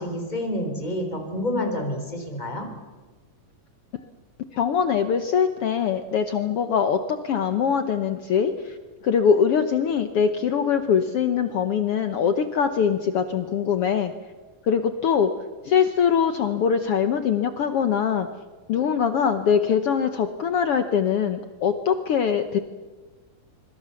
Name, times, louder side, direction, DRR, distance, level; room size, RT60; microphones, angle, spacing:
voice 1, 0.0-2.7, left 1 dB, 10° left, 4 dB, 4.1 m, -28 dB
voice 2, 4.5-8.8 9.0-14.1 14.6-15.3 15.6-18.3 18.7-22.6, left 7 dB, 70° left, 9 dB, 1.3 m, -22 dB
25.5 x 23.5 x 7.1 m, 1.3 s
omnidirectional pair, 3.9 m